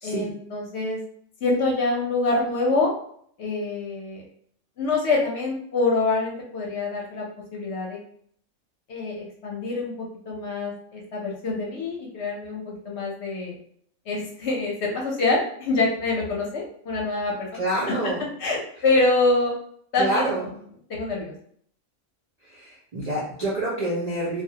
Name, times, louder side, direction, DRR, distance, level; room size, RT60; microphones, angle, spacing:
voice 1, 0.0-1.0 1.4-2.9 3.4-4.2 4.8-7.2 7.5-8.0 8.9-9.9 10.3-13.6 14.1-17.6 18.4-19.5 19.9-20.3 20.9-21.3, left 3 dB, 65° left, -2 dB, 0.8 m, -25 dB
voice 2, 17.6-18.2 20.0-20.4 22.6-24.4, right 1 dB, 70° right, -5 dB, 0.3 m, -27 dB
2.3 x 2.0 x 2.7 m, 0.63 s
omnidirectional pair, 1.4 m